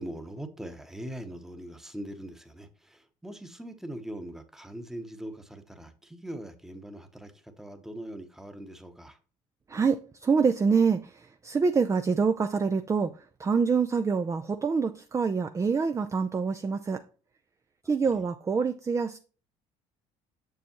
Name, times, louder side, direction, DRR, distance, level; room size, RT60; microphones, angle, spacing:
voice 1, 0.0-9.2, right 1 dB, 5° right, 1.0 m, -41 dB
voice 2, 9.7-17.0 17.8-19.2, right 5 dB, 20° right, 0.4 m, -26 dB
6.9 x 6.3 x 2.9 m
supercardioid pair, 85°, 14 cm